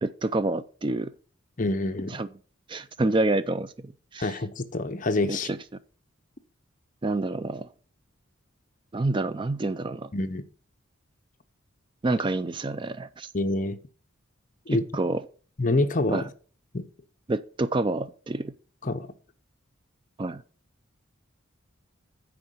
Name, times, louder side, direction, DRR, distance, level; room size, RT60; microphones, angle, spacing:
voice 1, 0.0-1.1 2.1-2.3 2.7-4.3 5.3-5.6 7.0-7.7 8.9-10.1 12.0-13.3 14.7-15.2 16.1-16.2 17.3-18.5 20.2-20.4, right 2 dB, 25° right, 0.4 m, -28 dB
voice 2, 1.6-2.2 4.2-5.5 10.1-10.4 13.3-13.8 14.7-14.9 15.6-16.3 16.7-16.8 18.8-19.1, left 2 dB, 40° left, 0.7 m, -26 dB
9.4 x 4.6 x 6.5 m
head